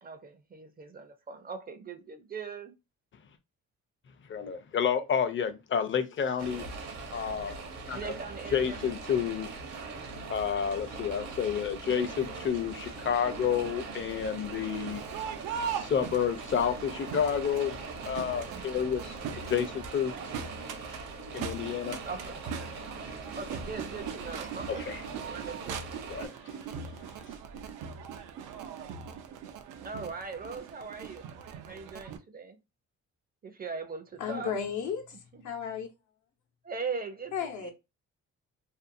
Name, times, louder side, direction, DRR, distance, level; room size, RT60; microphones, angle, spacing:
voice 1, 0.0-2.7 7.9-8.8 18.4-18.8 22.0-22.4 23.3-24.9 25.2-25.9 29.8-31.3 31.6-32.6 33.4-34.6 35.3-35.4 36.6-37.7, right 5 dB, 30° right, 0.5 m, -40 dB
voice 2, 4.3-6.6 7.1-7.6 7.9-8.1 8.5-9.5 10.3-15.0 15.6-17.7 18.0-20.1 21.3-22.0 24.7-25.0 26.1-26.3, left 7 dB, 40° left, 0.6 m, -30 dB
sound 1, 6.4-26.3, right 4 dB, 65° right, 0.8 m, -41 dB
Crowd, 14.4-32.2, right 7 dB, 90° right, 0.5 m, -41 dB
voice 3, 34.2-35.9 37.3-37.7, left 7 dB, 75° left, 0.8 m, -34 dB
2.6 x 2.2 x 2.6 m
cardioid pair, 90°, 30 cm